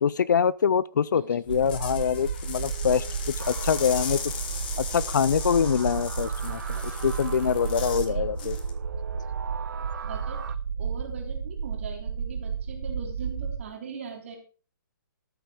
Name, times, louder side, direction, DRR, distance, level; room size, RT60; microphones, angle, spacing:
voice 1, 0.0-3.0 3.5-4.2 4.8-8.6, left 7 dB, 60° left, 0.5 m, -24 dB
sound 1, 1.4-8.1 8.4-8.7, left 7 dB, 25° left, 1.6 m, -38 dB
sound 2, 1.5-13.6, right 6 dB, 85° right, 1.6 m, -32 dB
sound 3, 3.4-10.6, right 7 dB, 70° right, 0.8 m, -42 dB
voice 2, 8.1-8.5 9.7-10.4 10.8-14.4, right 6 dB, 35° right, 3.6 m, -41 dB
13.0 x 7.8 x 4.9 m
hypercardioid pair, 180°, 11 cm